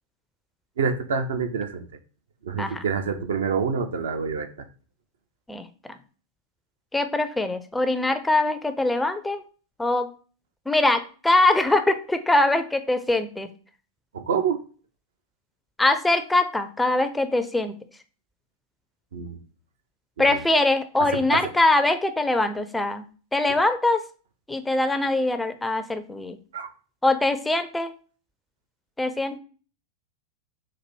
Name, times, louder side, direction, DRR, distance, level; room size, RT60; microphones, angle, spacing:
voice 1, 0.8-1.9 2.4-4.7 14.1-14.6 19.1-19.4 20.2-20.4 21.0-21.4 26.5-26.7, right 6 dB, 65° right, 8 dB, 0.5 m, -27 dB
voice 2, 5.5-6.0 6.9-9.4 9.8-10.1 10.7-13.5 15.8-17.7 20.2-23.0 23.3-24.0 24.5-26.4 27.0-27.9 29.0-29.4, left 2 dB, 5° left, 10 dB, 0.4 m, -23 dB
4.0 x 2.6 x 4.4 m, 0.39 s
figure-of-eight pair, 90°, 0 cm